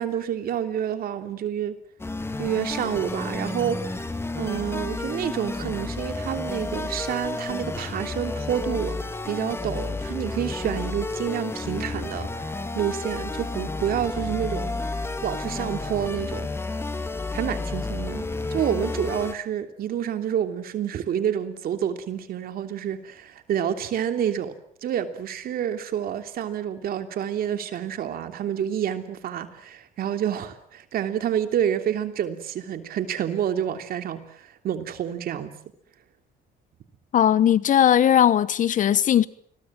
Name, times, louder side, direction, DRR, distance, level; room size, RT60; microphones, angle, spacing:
voice 1, 0.0-1.8 2.4-4.0 4.4-9.0 9.2-14.7 15.2-16.5 17.3-24.5 24.8-35.5, right 9 dB, 60° right, 3.1 m, -28 dB
sound 1, 2.0-19.3, left 3 dB, 15° left, 1.9 m, -31 dB
voice 2, 37.1-39.3, left 10 dB, 50° left, 1.1 m, -18 dB
28.5 x 22.0 x 7.5 m
cardioid pair, 110°, 17 cm